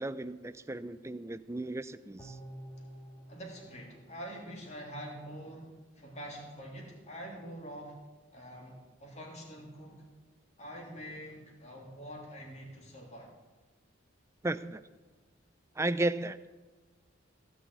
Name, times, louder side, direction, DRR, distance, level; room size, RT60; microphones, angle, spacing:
voice 1, 0.0-2.4 14.4-14.8 15.8-16.4, right 2 dB, 15° right, 14 dB, 0.4 m, -34 dB
sound 1, 2.2-5.5 5.9-6.0, right 1 dB, 15° left, 1.8 m, -51 dB
voice 2, 3.3-8.0 8.3-10.1 10.6-13.3, equal, 35° left, -1 dB, 3.1 m, -45 dB
16.5 x 6.2 x 8.4 m, 1.3 s
head